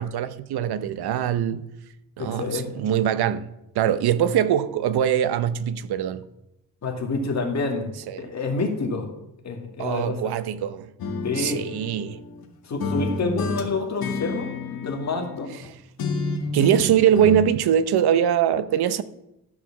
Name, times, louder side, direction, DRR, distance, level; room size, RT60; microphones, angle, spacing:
voice 1, 0.0-1.7 2.2-3.5 3.7-6.2 8.1-8.2 9.8-10.9 11.4-12.2 16.5-19.0, right 9 dB, 80° right, 0.8 m, -22 dB
voice 2, 2.2-2.7 6.8-9.1 9.4-10.3 11.2-11.6 12.6-15.5, left 3 dB, 45° left, 2.1 m, -28 dB
sound 1, 11.0-12.5 12.8-15.7 16.0-17.4, left 3 dB, 70° left, 1.7 m, -30 dB
13.5 x 4.9 x 7.1 m
cardioid pair, 130°, 38 cm